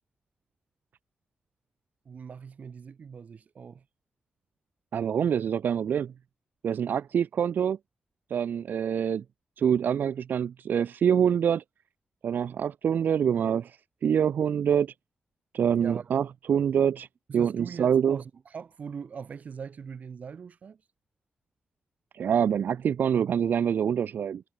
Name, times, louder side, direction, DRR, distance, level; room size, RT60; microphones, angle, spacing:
voice 1, 2.1-3.9 15.8-16.1 17.3-20.8, right 6 dB, 50° right, 1.8 m, -41 dB
voice 2, 4.9-6.1 6.6-7.8 8.3-9.2 9.6-11.6 12.2-14.9 15.5-17.1 17.3-18.2 22.1-24.4, right 8 dB, 75° right, 0.8 m, -25 dB
wide cardioid pair, 175°, 3 cm